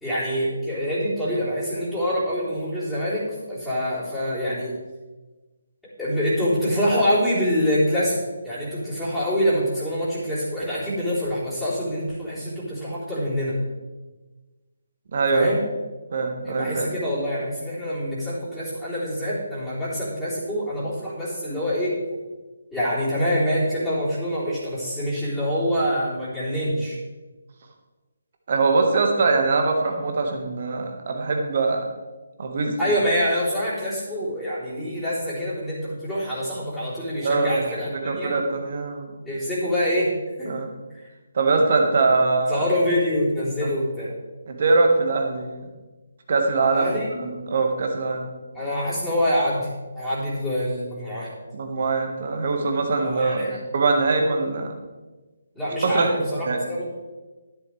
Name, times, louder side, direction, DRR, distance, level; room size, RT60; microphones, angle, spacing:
voice 1, 0.0-4.7 6.0-8.2 8.4-13.6 15.3-15.6 16.4-21.9 22.7-27.0 32.8-37.9 38.2-38.3 39.2-40.1 40.4-40.6 42.5-44.1 46.7-47.1 48.5-49.7 49.9-51.3 53.0-53.6 55.5-56.8, equal, ahead, -14 dB, 3.8 m, -25 dB
voice 2, 15.1-15.5 16.1-16.9 28.5-31.8 32.4-32.7 37.2-37.7 38.0-39.2 40.5-40.7 41.3-42.7 43.6-43.7 44.5-45.6 46.3-48.3 51.5-53.5 53.7-54.7 55.8-56.1 56.5-56.6, right 3 dB, 45° right, 3 dB, 1.6 m, -22 dB
11.5 x 10.0 x 3.4 m, 1.2 s
figure-of-eight pair, 145°, 0 cm